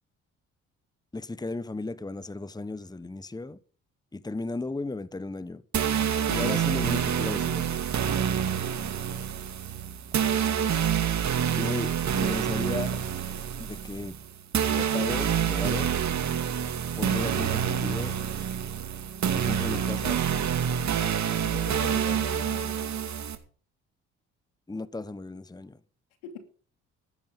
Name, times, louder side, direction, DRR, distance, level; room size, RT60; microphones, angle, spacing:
voice 1, 1.1-3.6 4.1-5.6 6.3-7.8 11.6-13.0 13.6-14.2 14.6-15.9 17.0-18.2 19.3-20.2 21.9-22.0 24.7-25.8, left 2 dB, 10° left, 1.2 m, -35 dB
sound 1, 5.7-23.4, right 8 dB, 55° right, 2.4 m, -27 dB
voice 2, 10.3-10.9 21.4-22.8 26.2-26.4, left 7 dB, 90° left, 2.7 m, -43 dB
15.0 x 12.5 x 5.3 m
hypercardioid pair, 55°, 33 cm